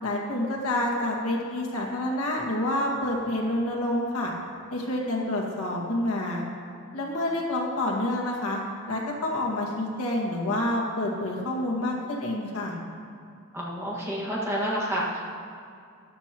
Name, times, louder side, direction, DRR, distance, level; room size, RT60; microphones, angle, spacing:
voice 1, 0.0-4.3 4.7-6.4 6.9-8.6 8.9-12.8, left 1 dB, 90° left, -2 dB, 2.0 m, -28 dB
voice 2, 13.5-15.2, equal, 10° right, -6 dB, 1.8 m, -29 dB
14.0 x 12.0 x 3.0 m, 2.4 s
head